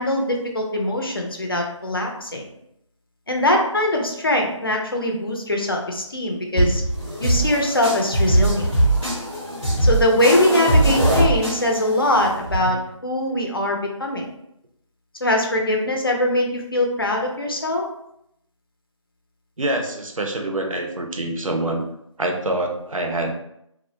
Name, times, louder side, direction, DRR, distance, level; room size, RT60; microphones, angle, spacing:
voice 1, 0.0-2.4 3.3-6.8 7.2-8.7 9.8-14.3 15.2-17.8, left 1 dB, 45° left, 1 dB, 0.4 m, -22 dB
sound 1, 6.6-12.5, right 1 dB, 5° right, 0.7 m, -21 dB
voice 2, 19.6-21.8 22.2-23.3, right 1 dB, 85° right, 3 dB, 0.5 m, -25 dB
2.3 x 2.0 x 2.7 m, 0.77 s
figure-of-eight pair, 165°, 17 cm